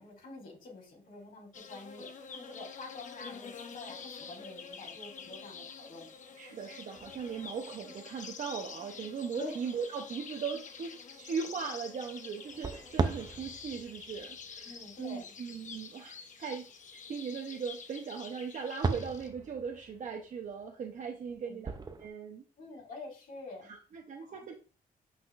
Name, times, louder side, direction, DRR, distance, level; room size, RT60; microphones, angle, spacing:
voice 1, 0.0-6.1 9.3-9.6 14.6-15.3 21.2-21.6 22.6-23.7 24.2-24.5, left 2 dB, 75° left, -1 dB, 3.4 m, -47 dB
sound 1, 1.5-19.3, left 5 dB, 55° left, 1.0 m, -47 dB
voice 2, 6.4-22.4 23.6-24.6, right 6 dB, 55° right, 3 dB, 0.8 m, -39 dB
sound 2, 6.9-8.1 8.8-8.9 9.6-9.7 12.5-16.3 18.6-22.1, right 4 dB, 25° right, 0.6 m, -38 dB
8.2 x 5.9 x 2.5 m, 0.36 s
wide cardioid pair, 150°, 15 cm